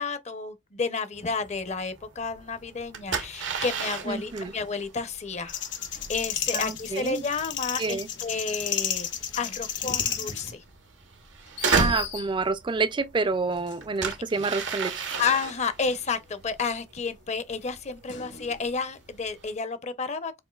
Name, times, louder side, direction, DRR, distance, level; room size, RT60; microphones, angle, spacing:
voice 1, 0.0-5.5 6.1-9.1 9.4-10.6 15.2-20.4, left 5 dB, 40° left, 0.7 m, -31 dB
sound 1, 1.1-19.5, right 5 dB, 90° right, 1.0 m, -35 dB
voice 2, 4.1-4.5 6.5-7.2 7.8-8.1 11.7-15.1, right 4 dB, 25° right, 0.4 m, -28 dB
sound 2, 5.5-10.5, left 9 dB, 85° left, 1.0 m, -31 dB
sound 3, 5.7-12.9 13.5-16.5 17.0-19.1, left 7 dB, 70° left, 1.5 m, -45 dB
7.0 x 2.6 x 2.3 m
head